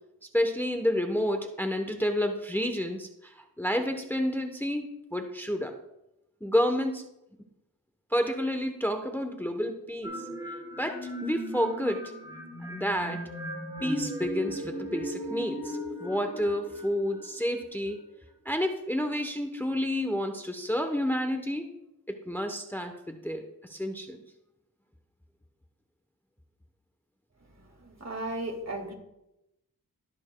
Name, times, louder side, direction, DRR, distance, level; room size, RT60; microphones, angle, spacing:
voice 1, 0.3-4.9 5.1-5.7 6.4-7.0 8.1-10.2 10.8-12.1 12.7-13.2 13.8-18.0 18.4-21.7 22.1-23.4 23.7-24.2, equal, 5° left, 5 dB, 0.8 m, -30 dB
sound 1, 10.0-17.8, equal, 10° right, 2.7 m, -37 dB
voice 2, 27.5-28.9, right 1 dB, 45° right, 2 dB, 2.0 m, -36 dB
19.5 x 7.0 x 2.2 m, 0.87 s
wide cardioid pair, 60°, 36 cm